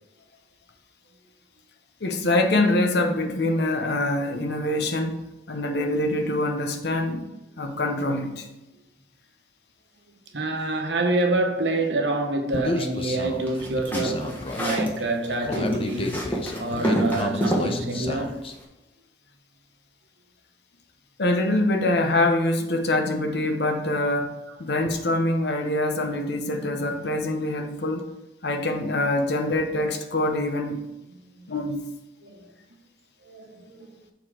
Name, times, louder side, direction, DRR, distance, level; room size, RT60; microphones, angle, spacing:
voice 1, 2.0-7.2 7.6-8.5 21.2-28.1 28.4-30.9 31.5-31.9, left 1 dB, 65° left, 0.9 m, -24 dB
voice 2, 10.3-16.2 16.6-18.4 31.1-31.5 32.2-32.5 33.2-34.0, right 2 dB, 80° right, 1.1 m, -27 dB
Human voice, 12.5-18.5, left 2 dB, 30° left, 0.6 m, -31 dB
sound 1, 13.5-15.0 15.2-17.7, equal, 10° left, 1.3 m, -27 dB
7.3 x 3.9 x 4.9 m
head